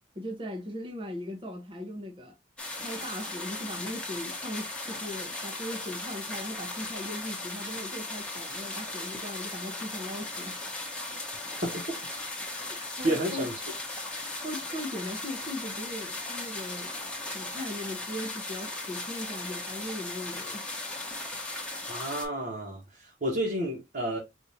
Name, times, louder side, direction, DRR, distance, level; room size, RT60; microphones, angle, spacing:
voice 1, 0.1-2.3 2.8-10.6 12.6-13.5 14.4-16.9 17.3-20.7, left 1 dB, 25° right, 0.8 m, -39 dB
sound 1, 2.6-22.3, left 2 dB, 5° left, 1.1 m, -37 dB
voice 2, 13.0-13.5 21.9-22.8 23.2-24.2, right 1 dB, 50° right, 1.3 m, -30 dB
4.8 x 2.7 x 2.7 m
head